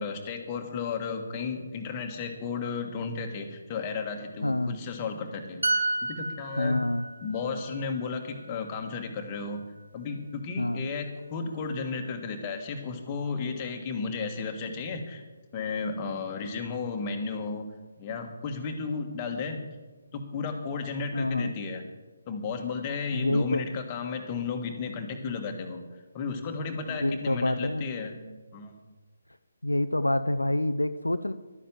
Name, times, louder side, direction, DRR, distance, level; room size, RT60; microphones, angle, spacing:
voice 1, 0.0-6.8 7.2-9.6 9.9-15.2 15.5-17.7 18.0-19.6 20.1-21.8 22.3-25.8 26.1-28.2 28.5-28.7, left 5 dB, 20° left, 3 dB, 1.7 m, -33 dB
voice 2, 4.4-4.8 6.6-7.1 10.6-10.9 21.1-21.5 23.1-23.6 26.9-27.8 29.6-31.3, left 1 dB, 80° left, 11 dB, 0.6 m, -27 dB
sound 1, 5.6-9.2 9.5-9.8, right 2 dB, 65° right, 0.9 m, -32 dB
12.5 x 10.0 x 7.4 m, 1.2 s
figure-of-eight pair, 145°, 0 cm